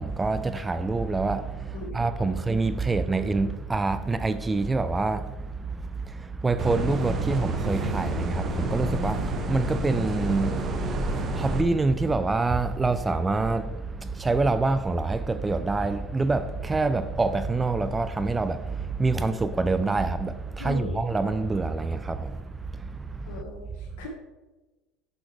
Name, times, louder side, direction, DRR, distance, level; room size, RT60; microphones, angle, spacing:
voice 1, 0.0-22.4 22.7-23.4, right 3 dB, 15° right, 0.3 m, -26 dB
voice 2, 1.7-2.4 20.6-21.0 23.3-24.1, left 2 dB, 80° left, 1.1 m, -39 dB
sound 1, 6.6-11.6, right 1 dB, 35° right, 0.8 m, -29 dB
6.3 x 5.9 x 3.3 m
supercardioid pair, 110°, 0 cm